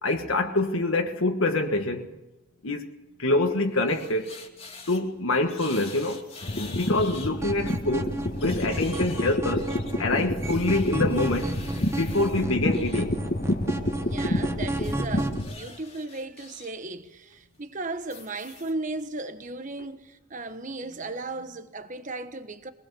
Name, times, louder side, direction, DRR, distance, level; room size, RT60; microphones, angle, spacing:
voice 1, 0.0-2.1 2.6-2.9 3.2-4.4 4.9-6.2 6.6-8.1 8.4-9.7 10.0-11.5 11.9-13.2, left 2 dB, 75° left, 1.7 m, -26 dB
sound 1, 3.5-5.0 5.4-7.3 7.7-13.0 14.7-16.7 17.1-17.3 18.0-18.7, left 4 dB, 30° left, 2.6 m, -46 dB
sound 2, 6.4-15.5, left 1 dB, 45° left, 1.7 m, -29 dB
sound 3, 7.4-15.4, right 1 dB, 15° right, 1.0 m, -33 dB
voice 2, 14.0-22.7, right 2 dB, 35° right, 1.3 m, -36 dB
23.0 x 19.0 x 7.0 m
head